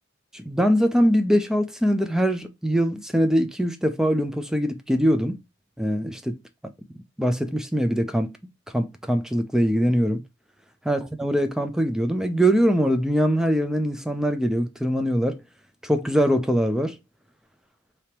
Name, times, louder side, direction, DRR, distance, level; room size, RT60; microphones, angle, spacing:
voice 1, 0.3-5.4 5.8-6.4 7.2-8.3 8.7-10.2 10.9-15.4 15.8-16.9, equal, 5° right, 0.5 m, -22 dB
3.4 x 2.9 x 4.4 m
head